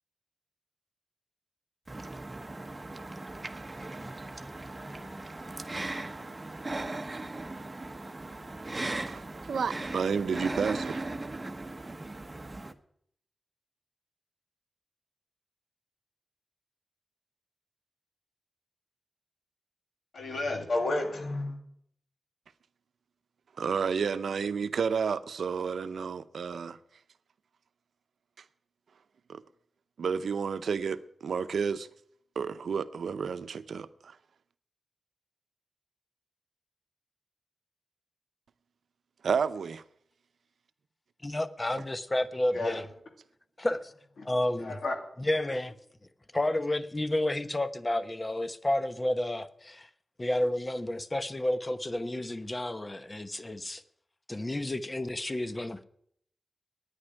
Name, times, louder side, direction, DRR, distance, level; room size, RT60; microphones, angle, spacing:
sound 1, 1.9-12.7, right 2 dB, 30° right, 1.0 m, -38 dB
voice 1, 9.1-11.0 23.6-26.8 29.3-29.4 30.0-31.9 32.4-34.2 39.2-39.8, right 6 dB, 90° right, 0.6 m, -31 dB
voice 2, 20.1-21.6 42.5-42.8 44.6-44.9, left 2 dB, 80° left, 2.7 m, -31 dB
voice 3, 41.2-42.9 43.6-43.9 44.2-44.8 45.2-45.8 46.3-49.9 50.2-53.8 54.3-55.8, left 1 dB, 25° left, 1.0 m, -31 dB
9.8 x 9.7 x 10.0 m
cardioid pair, 65°, 0 cm